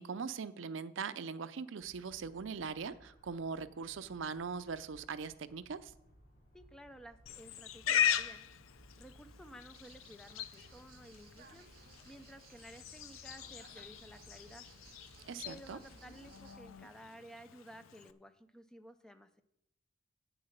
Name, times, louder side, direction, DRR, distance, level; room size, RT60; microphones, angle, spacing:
voice 1, 0.0-5.9 15.2-15.8, right 5 dB, 70° right, 14 dB, 0.5 m, -41 dB
sound 1, 1.8-16.7, right 1 dB, 45° left, 3.2 m, -62 dB
voice 2, 6.5-8.5 8.9-11.7 12.0-14.7 15.4-19.3, equal, 5° left, 9 dB, 0.5 m, -54 dB
Livestock farm animals working animals, 7.3-18.1, left 9 dB, 90° left, 0.5 m, -40 dB
sound 2, 9.7-16.6, right 5 dB, 45° right, 1.2 m, -61 dB
8.7 x 7.8 x 6.6 m, 0.83 s
head